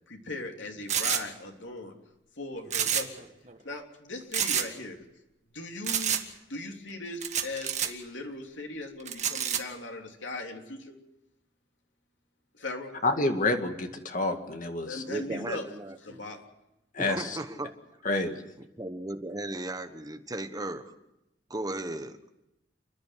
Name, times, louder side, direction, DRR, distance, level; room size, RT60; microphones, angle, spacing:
voice 1, 0.1-1.9 2.4-3.3 3.6-5.0 5.5-6.2 6.5-11.0 12.5-13.0 14.8-15.6 16.0-16.4, left 2 dB, 85° left, 2 dB, 3.3 m, -39 dB
sound 1, 0.9-1.2 2.7-3.2 3.5-3.6 4.3-4.7 5.9-6.2 7.2-7.9 9.1-9.6, right 9 dB, 40° right, 1.6 m, -28 dB
voice 2, 13.0-15.0 17.0-17.4 18.0-18.4, left 2 dB, 45° left, 5 dB, 2.1 m, -28 dB
voice 3, 15.1-16.2 17.0-17.7 18.1-18.2 18.6-20.8 21.5-22.2, right 1 dB, 20° right, 7 dB, 1.3 m, -36 dB
29.0 x 10.5 x 9.4 m, 0.90 s
head